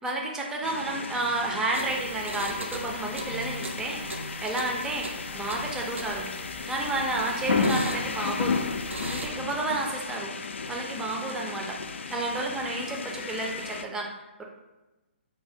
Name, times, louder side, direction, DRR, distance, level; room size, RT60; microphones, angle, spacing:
voice 1, 0.0-6.3 6.7-10.3 10.7-11.8 12.1-14.4, right 2 dB, 10° right, 0 dB, 0.4 m, -31 dB
sound 1, 0.6-13.9, left 4 dB, 75° left, 0.4 m, -33 dB
sound 2, 1.7-9.3, right 1 dB, 90° right, 0.6 m, -40 dB
3.1 x 2.6 x 3.5 m, 1.1 s
hypercardioid pair, 140°, 6 cm